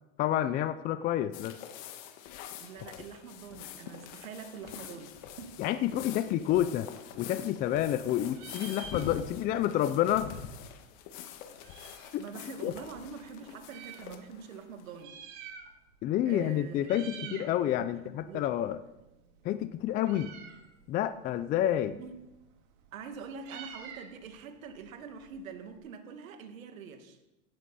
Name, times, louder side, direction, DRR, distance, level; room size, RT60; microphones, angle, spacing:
voice 1, 0.2-1.6 5.6-6.9 7.2-10.3 12.1-12.2 12.6-12.7 16.0-18.8 19.4-20.3 20.9-22.0, left 12 dB, 25° left, 12 dB, 0.4 m, -29 dB
sound 1, 1.3-15.0, left 9 dB, 50° left, 1.7 m, -45 dB
voice 2, 2.6-5.6 12.2-15.2 16.3-18.5 21.9-22.2 22.9-27.2, right 6 dB, 85° right, 6 dB, 2.1 m, -45 dB
Meow, 7.1-8.0 8.3-9.6 9.8-9.9 10.1-12.2 12.9-14.1 14.8-16.0 16.3-16.5 16.8-17.6 17.9-25.8, right 7 dB, 45° right, 2.3 m, -49 dB
17.0 x 11.5 x 4.2 m, 0.96 s
supercardioid pair, 130°, 40 cm